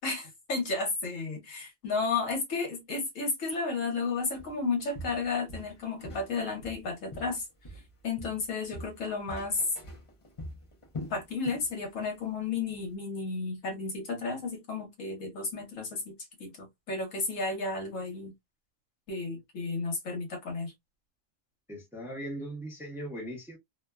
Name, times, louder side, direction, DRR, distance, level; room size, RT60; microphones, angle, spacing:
voice 1, 0.0-7.5 8.0-9.6 11.1-16.1 16.4-18.3 19.1-20.7, left 4 dB, 75° left, 1.3 m, -33 dB
Walk footsteps, 4.4-4.6 4.9-6.3 6.6-7.9 8.2-11.7 12.0-12.3 12.7-12.8, left 1 dB, 35° left, 0.6 m, -43 dB
voice 2, 21.7-23.6, right 1 dB, ahead, 0.7 m, -39 dB
2.7 x 2.2 x 2.2 m
omnidirectional pair, 1.4 m